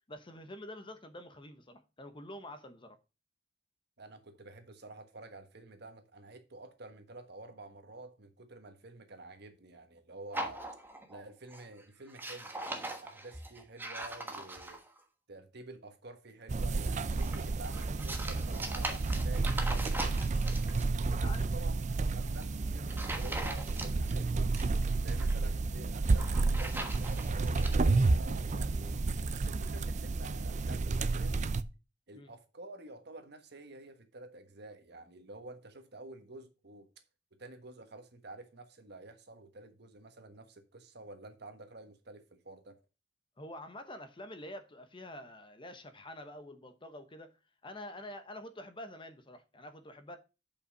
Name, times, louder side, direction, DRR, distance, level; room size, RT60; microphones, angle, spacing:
voice 1, 0.1-3.0 21.2-21.5 32.1-32.3 43.4-47.3 47.6-50.2, left 1 dB, 30° left, 1.0 m, -47 dB
voice 2, 4.0-10.7 11.1-14.8 15.3-20.3 20.9-21.8 22.1-24.5 25.0-29.0 29.3-31.4 32.1-36.9 37.4-42.8, right 2 dB, 60° right, 1.4 m, -50 dB
sound 1, 10.3-11.2 11.5-11.8 12.1-15.0 16.8-20.8 22.2-22.4 22.9-24.1 24.4-25.4 26.0-27.8, right 2 dB, 10° right, 1.2 m, -41 dB
sound 2, 16.5-31.6, right 3 dB, 40° right, 0.5 m, -31 dB
7.2 x 5.5 x 5.2 m
head